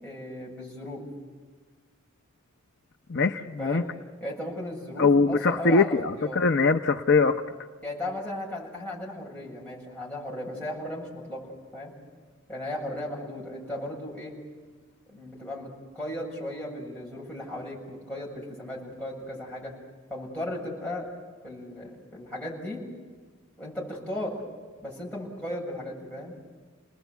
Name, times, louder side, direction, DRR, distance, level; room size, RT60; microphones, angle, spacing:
voice 1, 0.0-1.0 3.6-3.9 4.2-6.4 7.8-11.9 12.5-14.3 15.1-19.7 20.1-21.1 21.4-22.8 23.6-24.4 24.8-26.4, left 1 dB, 5° left, -5 dB, 7.5 m, -36 dB
voice 2, 3.1-3.8 5.0-7.4, left 4 dB, 60° left, 6 dB, 0.8 m, -22 dB
30.0 x 20.0 x 8.2 m, 1.5 s
head